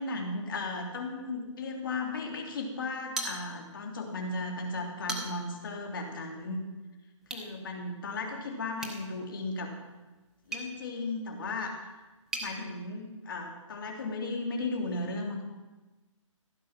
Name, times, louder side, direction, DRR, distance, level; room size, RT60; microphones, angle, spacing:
voice 1, 0.0-6.6 7.3-9.7 10.5-11.8 12.4-15.4, left 3 dB, 40° left, 1 dB, 2.7 m, -35 dB
sound 1, 3.1-3.9 4.3-4.4 4.8-5.6 7.2-7.5 8.8-12.5, right 2 dB, 5° right, 0.7 m, -40 dB
15.5 x 8.5 x 5.8 m, 1.2 s
hypercardioid pair, 165°, 17 cm